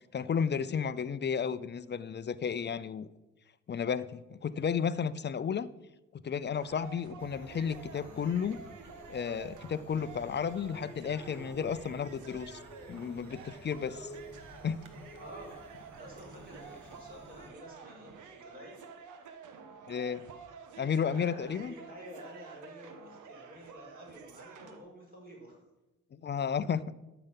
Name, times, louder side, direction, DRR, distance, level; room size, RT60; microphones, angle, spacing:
voice 1, 0.1-3.1 3.7-5.7 6.2-8.6 9.1-12.6 12.9-14.1 14.6-14.9 19.9-20.2 20.8-21.7 26.1-26.9, left 7 dB, 35° left, 16 dB, 0.6 m, -33 dB
sound 1, 6.5-24.8, right 5 dB, 80° right, 1.4 m, -50 dB
sound 2, 7.2-17.5, equal, 5° left, 3.6 m, -52 dB
voice 2, 15.2-15.6 15.9-18.7 21.1-25.6, equal, 30° right, -2 dB, 4.7 m, -50 dB
12.5 x 6.9 x 5.8 m, 1.0 s
cardioid pair, 90°, 30 cm